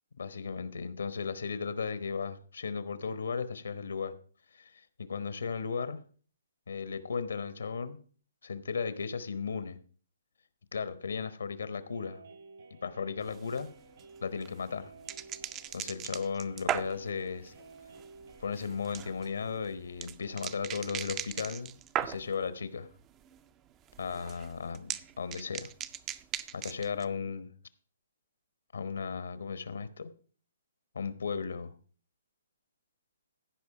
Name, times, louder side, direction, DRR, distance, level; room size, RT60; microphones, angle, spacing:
voice 1, 0.2-4.1 4.5-4.7 5.0-6.0 6.7-8.0 8.4-9.8 10.7-12.2 12.8-13.7 14.2-14.9 15.7-17.5 18.4-21.7 22.0-22.9 24.0-25.7 26.5-27.5 28.7-30.1 30.9-31.7, left 5 dB, 80° left, 1.1 m, -35 dB
sound 1, 11.9-19.3, right 3 dB, 75° right, 2.8 m, -54 dB
sound 2, 13.2-22.5 22.8-23.4 23.7-27.0, right 10 dB, 20° right, 0.4 m, -39 dB
15.0 x 5.2 x 4.8 m
hypercardioid pair, 150°, 0 cm